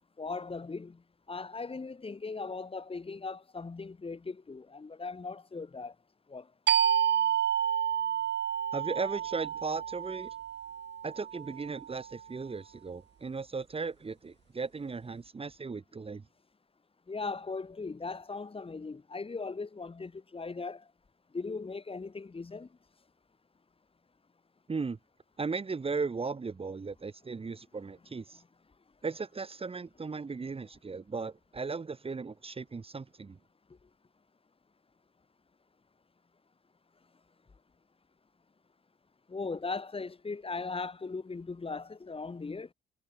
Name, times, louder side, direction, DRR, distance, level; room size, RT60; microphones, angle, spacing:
voice 1, 0.2-1.0 1.3-5.9 6.3-6.5 17.1-20.9 21.3-22.7 39.3-42.7, left 4 dB, 30° left, 7.6 m, -38 dB
sound 1, 6.7-12.0, right 9 dB, 60° right, 2.4 m, -30 dB
voice 2, 8.7-10.3 11.0-16.2 24.7-25.0 25.4-28.4 29.0-33.4, right 4 dB, 30° right, 2.1 m, -36 dB
cardioid pair, 90°, 20 cm